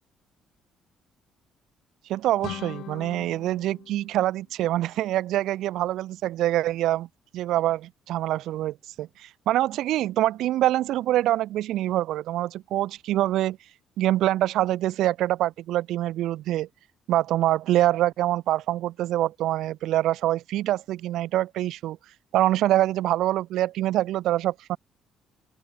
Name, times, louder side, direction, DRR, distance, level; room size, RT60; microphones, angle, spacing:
voice 1, 2.1-7.1 7.3-13.6 14.0-16.7 17.1-22.0 22.3-24.8, right 14 dB, 75° right, 0.4 m, -25 dB
sound 1, 2.4-5.2, left 12 dB, 70° left, 2.2 m, -42 dB
open air
supercardioid pair, 80°, 0 cm